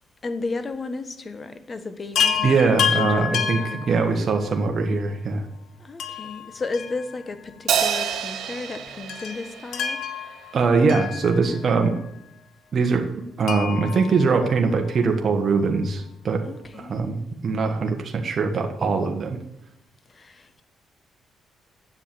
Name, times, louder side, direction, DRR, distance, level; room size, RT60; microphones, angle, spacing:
voice 1, 0.2-4.2 5.8-10.5 16.5-17.0 20.1-20.6, left 3 dB, 35° left, 1.4 m, -34 dB
Chime, 2.2-4.6 6.0-7.5 7.8-7.9 9.1-11.8 13.5-15.1 16.6-16.7 17.0-17.1, left 7 dB, 75° left, 1.4 m, -29 dB
voice 2, 2.4-3.6 3.9-5.4 10.5-12.0 12.7-13.1 13.4-16.4 16.8-19.4, right 4 dB, 45° right, 1.5 m, -22 dB
Crash cymbal, 7.7-10.4, right 8 dB, 75° right, 1.5 m, -27 dB
9.7 x 7.6 x 8.7 m
cardioid pair, 90°, 0 cm